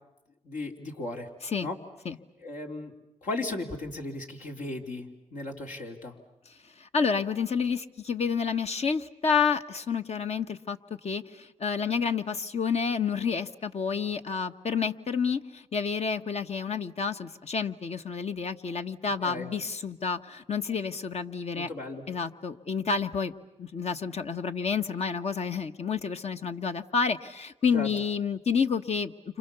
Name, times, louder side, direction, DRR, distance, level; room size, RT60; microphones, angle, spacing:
voice 1, 0.4-1.3 1.6-1.8 2.4-2.9 3.2-6.1 19.2-19.5 21.5-22.0 27.7-27.9, left 2 dB, 75° left, 1 dB, 3.5 m, -36 dB
voice 2, 6.8-10.8 11.0-21.7 22.1-23.3 23.6-29.4, left 6 dB, 55° left, 7 dB, 1.3 m, -29 dB
30.0 x 26.5 x 7.0 m, 0.93 s
cardioid pair, 65°, 13 cm